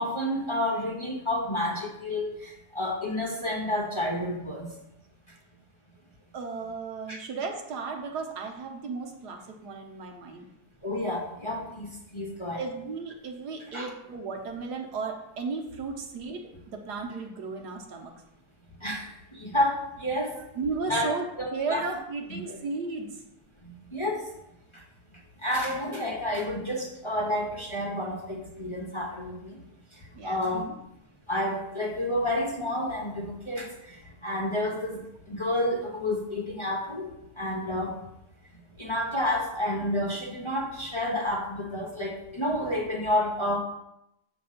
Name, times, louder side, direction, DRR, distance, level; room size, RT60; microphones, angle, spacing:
voice 1, 0.0-4.7 7.1-7.2 10.8-12.6 13.7-13.9 18.8-20.4 20.9-21.8 22.5-22.6 23.6-24.3 24.7-24.8 25.4-29.6 29.9-30.7 31.3-34.0 34.2-37.1 37.4-37.9 38.8-43.6, left 1 dB, 25° left, -2 dB, 0.8 m, -30 dB
voice 2, 6.3-10.5 12.6-18.1 20.5-23.2 30.1-30.8, right 4 dB, 90° right, 3 dB, 1.5 m, -35 dB
7.6 x 3.4 x 5.6 m, 0.83 s
omnidirectional pair, 1.7 m